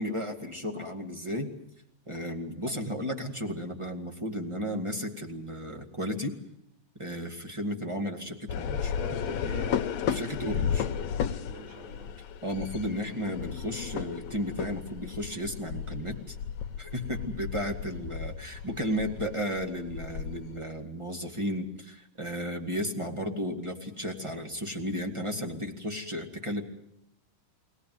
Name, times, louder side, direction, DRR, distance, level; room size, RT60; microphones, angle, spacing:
voice 1, 0.0-1.5 2.1-6.3 7.0-8.9 10.1-10.8 12.4-16.3 16.8-26.6, equal, 10° right, 4 dB, 1.5 m, -34 dB
sound 1, 8.5-20.6, left 8 dB, 65° left, 2.0 m, -34 dB
voice 2, 8.9-9.8 11.2-12.1 12.9-13.2, right 4 dB, 70° right, 2 dB, 5.3 m, -43 dB
24.5 x 18.0 x 9.4 m, 0.77 s
omnidirectional pair, 3.8 m